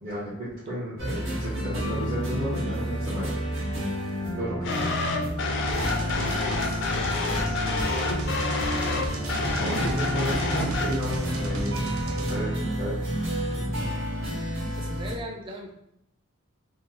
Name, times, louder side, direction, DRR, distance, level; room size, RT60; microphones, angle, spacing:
voice 1, 0.0-3.4 4.3-4.8 9.5-13.0, equal, 40° right, -11 dB, 1.0 m, -33 dB
sound 1, 1.0-15.1, equal, 65° right, 1.4 m, -30 dB
sound 2, 4.6-10.9, left 3 dB, 55° left, 0.4 m, -29 dB
voice 2, 5.1-5.4 5.9-7.1 7.7-8.5 13.7-14.0 14.5-15.7, equal, 25° right, -1 dB, 0.4 m, -41 dB
sound 3, 5.7-12.4, right 2 dB, 80° right, 0.5 m, -37 dB
3.0 x 2.0 x 3.6 m, 0.80 s
head